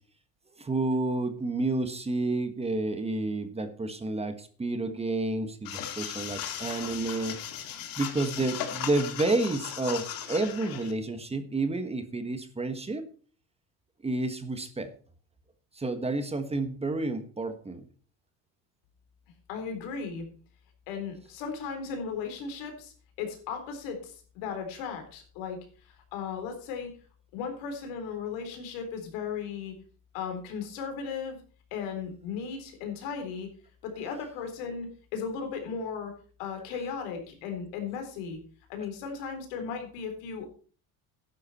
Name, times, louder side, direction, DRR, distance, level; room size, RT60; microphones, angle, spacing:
voice 1, 0.6-7.4 7.7-13.1 14.0-14.9 15.7-17.9, right 2 dB, 15° right, 9 dB, 1.4 m, -30 dB
sound 1, 5.6-10.9, left 10 dB, 60° left, 2.1 m, -37 dB
voice 2, 19.5-20.2 20.9-26.9 27.3-29.7 30.1-31.4 31.7-33.5 33.8-36.1 36.4-38.4 38.7-40.5, left 6 dB, 90° left, 5 dB, 3.9 m, -36 dB
12.5 x 10.0 x 4.3 m, 0.41 s
cardioid pair, 120°, 40 cm